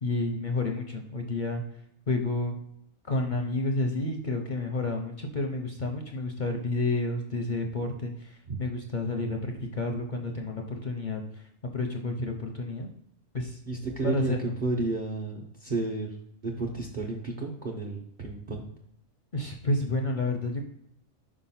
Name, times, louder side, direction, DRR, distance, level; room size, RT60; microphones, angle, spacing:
voice 1, 0.0-1.6 2.1-2.6 3.0-11.4 11.7-12.9 13.3-13.6 14.0-14.5 19.3-20.7, left 2 dB, 50° left, 3 dB, 0.6 m, -30 dB
voice 2, 13.7-14.3 14.6-16.1 16.4-18.7, right 2 dB, 45° right, 0 dB, 0.7 m, -31 dB
4.8 x 3.7 x 5.6 m, 0.74 s
omnidirectional pair, 1.4 m